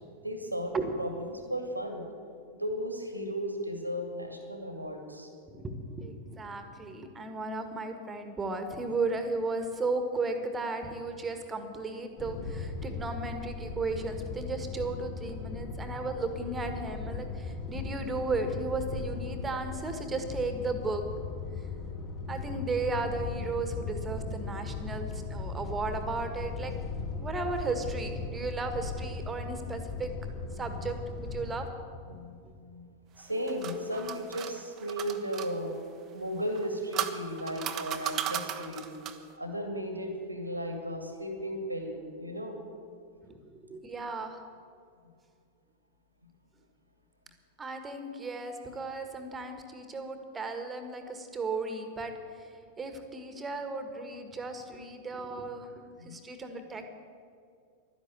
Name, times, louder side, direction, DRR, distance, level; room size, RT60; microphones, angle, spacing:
voice 1, 0.2-2.1 2.5-5.3 32.1-32.9 33.2-35.7 36.1-38.9 39.4-42.6 43.3-43.4 56.0-56.1, equal, 85° right, 4 dB, 2.2 m, -35 dB
voice 2, 5.5-21.0 22.3-26.7 27.2-30.1 30.6-31.7 32.1-32.2 43.5-44.4 47.6-52.1 52.8-55.7 56.0-56.8, right 3 dB, 15° right, 7 dB, 1.6 m, -35 dB
sound 1, 12.2-31.6, left 4 dB, 30° left, 2.5 m, -38 dB
sound 2, 33.2-35.5 36.5-39.3, right 10 dB, 35° right, 1.0 m, -36 dB
12.0 x 10.5 x 8.2 m, 2.3 s
figure-of-eight pair, 90°, 0 cm